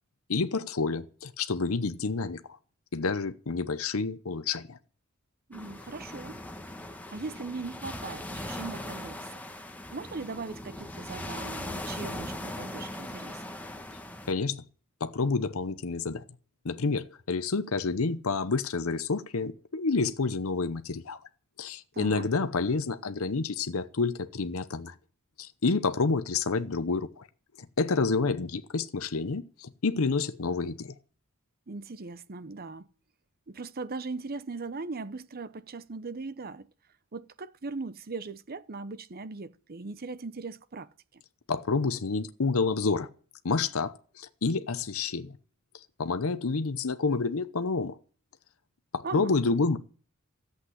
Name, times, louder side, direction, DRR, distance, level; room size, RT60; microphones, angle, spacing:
voice 1, 0.3-2.6 2.9-4.8 14.3-14.6 15.0-16.2 16.6-21.2 21.6-24.9 25.4-27.3 27.8-30.9 41.5-43.1 43.4-45.3 45.7-48.0 48.9-49.8, left 4 dB, 70° left, 0.8 m, -29 dB
sound 1, 5.5-14.3, left 1 dB, 5° left, 1.4 m, -39 dB
voice 2, 5.5-6.4 7.1-9.4 9.9-13.4 21.9-22.3 31.7-32.9 33.5-36.7 37.1-41.2 49.0-49.4, right 3 dB, 45° right, 0.8 m, -39 dB
14.0 x 8.2 x 9.9 m
head